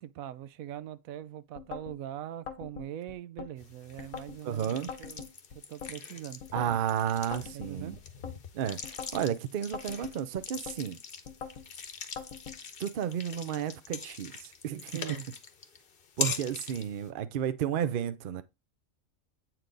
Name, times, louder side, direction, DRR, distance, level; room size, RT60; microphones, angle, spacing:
voice 1, 0.0-5.3 5.5-6.4 7.5-8.0 14.9-15.3, right 11 dB, 80° right, 1.0 m, -42 dB
sound 1, 1.6-2.0 2.5-3.5 4.0-4.4 4.9-5.9 6.4-6.8 7.3-8.4 8.8-9.3 9.7-10.8 11.3-11.7 12.2-12.6, left 7 dB, 85° left, 1.5 m, -42 dB
sound 2, 3.6-17.1, left 5 dB, 45° left, 1.0 m, -42 dB
voice 2, 4.4-4.9 6.5-8.0 8.5-11.0 12.8-15.0 16.2-18.4, right 9 dB, 55° right, 0.6 m, -32 dB
8.3 x 4.5 x 3.8 m
omnidirectional pair, 1.4 m